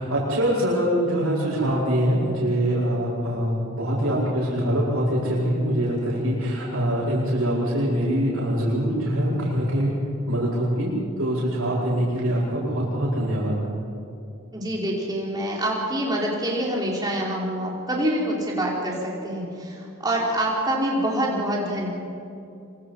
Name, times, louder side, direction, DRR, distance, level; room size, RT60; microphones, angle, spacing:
voice 1, 0.0-9.9 10.3-13.6, equal, 80° right, -8 dB, 7.8 m, -24 dB
voice 2, 14.5-21.9, right 1 dB, 20° right, -3 dB, 5.1 m, -26 dB
26.0 x 26.0 x 5.8 m, 2.6 s
head